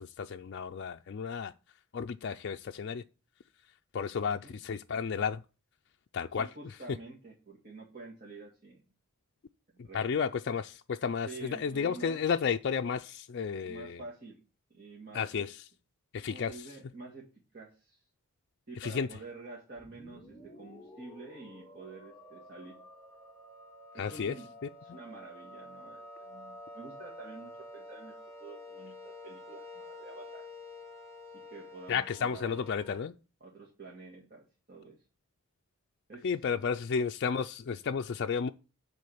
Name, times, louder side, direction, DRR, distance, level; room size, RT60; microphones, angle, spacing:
voice 1, 0.0-1.5 1.9-3.0 3.9-5.4 6.1-6.7 9.8-14.0 15.1-15.6 16.1-16.7 18.8-19.1 24.0-24.3 31.9-33.2 36.2-38.5, left 6 dB, 50° left, 0.4 m, -32 dB
voice 2, 6.4-8.9 9.7-10.0 11.3-12.2 13.6-14.4 14.7-15.3 16.3-17.3 17.5-18.0 18.7-22.8 23.9-24.5 24.8-30.5 31.3-32.7 33.4-35.0 36.1-36.3, right 3 dB, 40° right, 2.2 m, -48 dB
sound 1, 19.8-33.0, left 2 dB, 15° left, 1.1 m, -49 dB
9.6 x 4.1 x 7.0 m
head